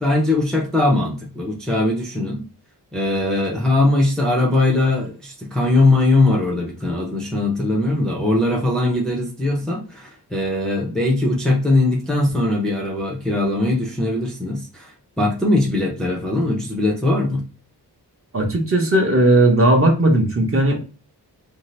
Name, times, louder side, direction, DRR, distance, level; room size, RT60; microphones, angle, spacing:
voice 1, 0.0-2.4 2.9-17.4, left 2 dB, ahead, -2 dB, 0.5 m, -20 dB
voice 2, 18.3-20.8, right 1 dB, 35° right, 1 dB, 0.7 m, -16 dB
2.6 x 2.4 x 3.1 m, 0.36 s
wide cardioid pair, 165°, 40 cm